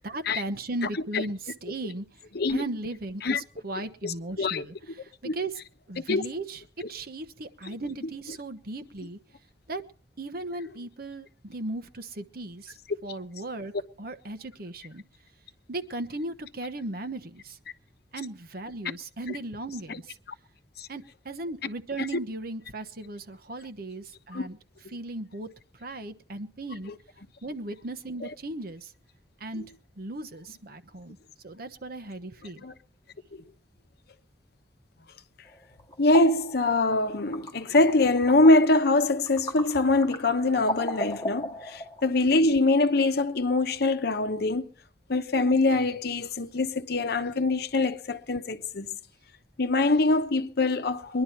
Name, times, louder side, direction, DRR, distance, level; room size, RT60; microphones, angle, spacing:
voice 1, 0.0-2.1 2.5-5.6 5.9-6.6 6.9-9.2 9.7-9.8 10.2-12.7 13.0-13.7 14.0-15.0 15.7-17.6 18.1-20.2 20.9-24.6 24.9-25.5 25.8-26.9 27.4-28.9 29.4-31.2 31.4-32.6, right 2 dB, 60° right, 1.1 m, -37 dB
voice 2, 4.0-4.6 5.2-5.4 6.1-6.2 20.8-20.9 24.3-24.5 32.6-32.7 36.0-44.7 45.1-48.9 49.6-51.2, left 2 dB, 65° left, 0.9 m, -23 dB
sound 1, 35.5-42.1, left 1 dB, 20° left, 2.3 m, -37 dB
22.5 x 11.0 x 4.5 m
head